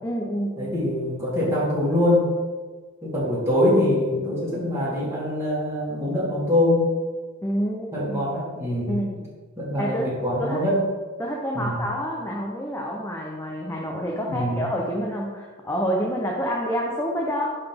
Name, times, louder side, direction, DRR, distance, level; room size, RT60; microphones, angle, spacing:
voice 1, 0.0-0.7 7.4-8.3 8.9-9.3 9.8-10.1 10.4-10.6 11.2-17.6, equal, 10° left, -1 dB, 0.6 m, -28 dB
voice 2, 0.6-2.3 3.0-6.9 7.9-9.0 9.6-10.8 11.5-11.8 14.3-14.6, left 1 dB, 10° right, -8 dB, 2.4 m, -23 dB
11.0 x 4.0 x 3.6 m, 1.4 s
head